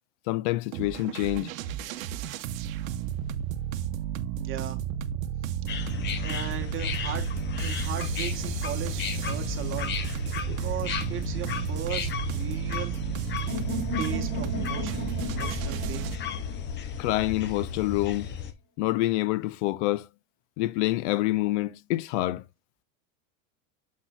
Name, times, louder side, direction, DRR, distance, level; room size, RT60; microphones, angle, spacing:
voice 1, 0.3-1.5 17.0-18.3 18.8-20.1 20.6-22.4, left 17 dB, 65° left, 0.5 m, -27 dB
sound 1, 0.7-16.2, right 10 dB, 90° right, 0.8 m, -33 dB
voice 2, 4.4-4.8 6.2-7.3 7.6-9.9 10.5-12.9 14.0-16.1, right 10 dB, 30° right, 1.3 m, -37 dB
sound 2, 5.7-18.5, left 7 dB, 25° left, 0.8 m, -34 dB
sound 3, 13.5-17.4, left 1 dB, 80° left, 3.5 m, -36 dB
7.4 x 6.0 x 2.3 m
supercardioid pair, 140°, 39 cm